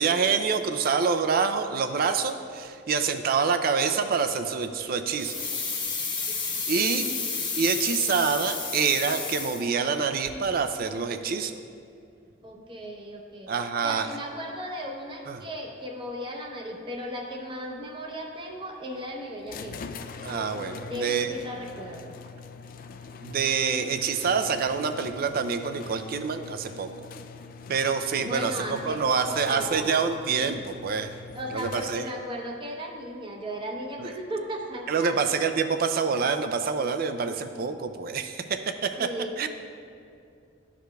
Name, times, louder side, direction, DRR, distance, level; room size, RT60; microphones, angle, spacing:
voice 1, 0.0-5.4 6.7-7.1 7.5-11.6 13.5-14.1 15.3-15.4 20.2-21.3 23.2-26.9 27.7-31.1 31.5-32.0 34.0-34.1 34.9-39.1 39.4-39.5, right 5 dB, 50° right, 8 dB, 0.4 m, -26 dB
sound 1, 5.2-10.0 10.2-10.3, left 4 dB, 25° left, 0.8 m, -31 dB
voice 2, 6.7-7.2 12.4-13.5 13.8-19.9 20.9-22.1 28.2-30.0 30.4-30.5 31.3-35.2 37.3-37.4 39.0-39.5, equal, 25° right, 1 dB, 0.8 m, -36 dB
sound 2, 19.5-32.3, left 5 dB, 50° left, 0.3 m, -43 dB
12.5 x 4.9 x 2.3 m, 2.4 s
head